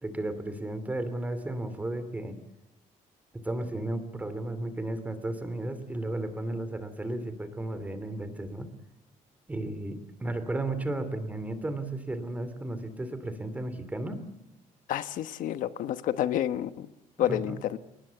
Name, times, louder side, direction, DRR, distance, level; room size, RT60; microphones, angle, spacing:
voice 1, 0.0-2.4 3.3-8.7 9.5-14.2 17.2-17.6, right 2 dB, 10° right, 11 dB, 2.7 m, -34 dB
voice 2, 14.9-16.9 17.2-17.8, left 11 dB, 75° left, 12 dB, 1.2 m, -29 dB
30.0 x 19.5 x 8.2 m, 0.84 s
cardioid pair, 175°, 14 cm